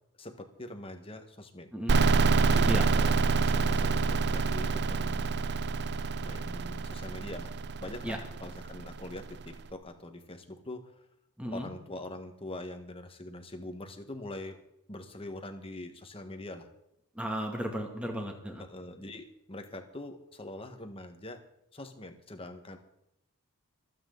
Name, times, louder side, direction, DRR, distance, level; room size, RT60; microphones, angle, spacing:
voice 1, 0.2-1.7 2.4-5.4 6.2-7.5 7.8-11.0 11.5-14.6 14.9-16.7 18.6-21.4 21.7-22.8, left 1 dB, 25° left, 5 dB, 1.5 m, -43 dB
sound 1, 1.9-9.4, right 4 dB, 50° right, 0.5 m, -27 dB
voice 2, 11.4-11.7 17.2-18.6, equal, 5° right, 1 dB, 2.3 m, -34 dB
26.5 x 8.9 x 4.0 m, 0.80 s
head